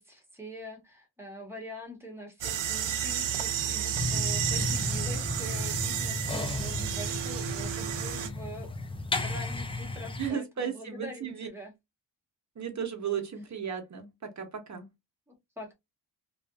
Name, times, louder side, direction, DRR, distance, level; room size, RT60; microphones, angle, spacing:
voice 1, 0.0-8.7 9.2-11.7 15.3-15.7, equal, 5° right, 1.0 m, -44 dB
sound 1, 2.4-8.3, right 9 dB, 90° right, 0.6 m, -32 dB
sound 2, 3.9-10.3, left 2 dB, 15° left, 0.4 m, -34 dB
voice 2, 10.2-11.5 12.6-14.9, right 7 dB, 40° right, 0.8 m, -35 dB
2.5 x 2.4 x 2.3 m
wide cardioid pair, 115°, 45 cm